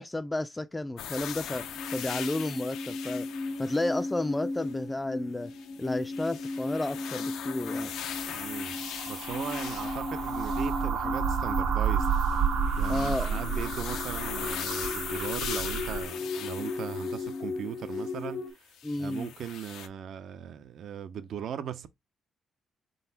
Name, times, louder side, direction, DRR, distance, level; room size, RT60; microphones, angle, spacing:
voice 1, 0.0-1.6 1.9-3.3 3.6-5.5 5.8-7.9 12.9-13.4 18.8-19.3, left 2 dB, 15° left, 0.3 m, -32 dB
sound 1, 1.0-4.7 5.5-10.9 12.0-18.1 18.7-19.9, left 9 dB, 85° left, 0.5 m, -40 dB
sound 2, 1.4-18.5, left 3 dB, 65° left, 1.0 m, -36 dB
sound 3, 7.9-16.0, right 6 dB, 85° right, 0.9 m, -31 dB
voice 2, 8.3-8.8 9.1-12.1 12.8-21.9, right 9 dB, 70° right, 0.5 m, -38 dB
4.2 x 3.9 x 2.7 m
cardioid pair, 90°, 0 cm